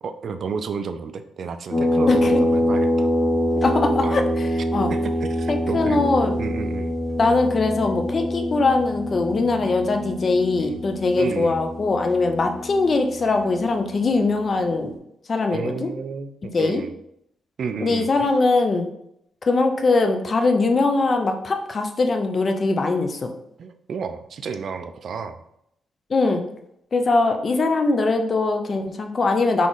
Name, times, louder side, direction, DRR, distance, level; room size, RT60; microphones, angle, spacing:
voice 1, 0.0-3.1 4.0-4.2 4.9-6.0 6.4-6.9 10.6-10.8 11.2-11.6 15.5-16.9 17.6-18.3 23.6-25.4, right 5 dB, 55° right, 9 dB, 0.4 m, -31 dB
sound 1, 1.7-14.8, left 1 dB, 20° left, 1.4 m, -25 dB
voice 2, 2.1-2.4 3.6-4.2 4.7-4.9 5.5-6.3 7.2-14.9 15.3-15.9 16.5-16.8 17.8-18.9 19.5-23.3 26.1-26.4 26.9-29.7, left 3 dB, 35° left, 5 dB, 0.6 m, -21 dB
4.1 x 3.0 x 3.8 m, 0.76 s
cardioid pair, 110°, 0 cm